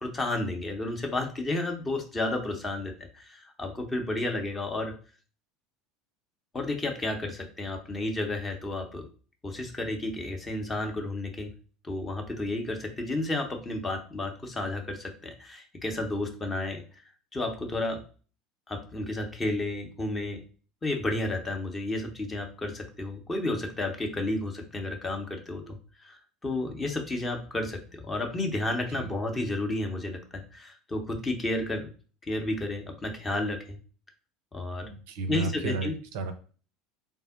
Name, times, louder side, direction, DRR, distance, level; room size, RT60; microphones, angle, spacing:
voice 1, 0.0-5.0 6.5-9.1 9.4-11.5 11.8-16.8 17.3-18.0 18.7-20.4 20.8-31.9 32.3-33.8 34.5-34.9 35.3-36.0, left 2 dB, 20° left, 3 dB, 0.7 m, -32 dB
voice 2, 34.8-36.3, right 4 dB, 60° right, 7 dB, 0.4 m, -33 dB
3.5 x 2.1 x 3.8 m, 0.39 s
figure-of-eight pair, 70°, 0 cm